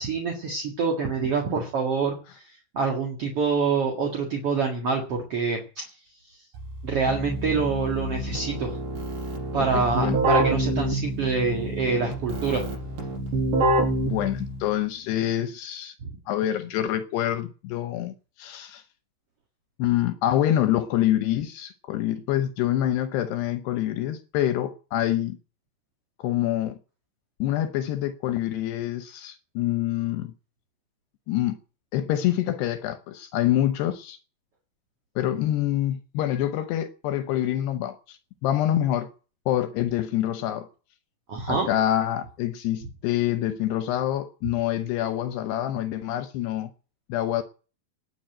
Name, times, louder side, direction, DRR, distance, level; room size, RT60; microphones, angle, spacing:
voice 1, 0.0-2.2 2.7-5.9 6.8-8.8 9.5-12.6 16.0-16.1 41.3-41.7, right 5 dB, 50° right, 1.9 m, -26 dB
Keyboard (musical), 6.6-14.8, right 1 dB, 65° right, 7.4 m, -27 dB
voice 2, 9.6-10.2 14.1-15.9 16.3-18.8 19.8-25.4 26.2-26.8 27.4-30.3 31.3-31.6 31.9-34.2 35.2-39.1 39.5-40.7 41.5-46.7 47.1-47.4, left 12 dB, 75° left, 2.7 m, -26 dB
18.5 x 7.0 x 8.9 m
omnidirectional pair, 5.3 m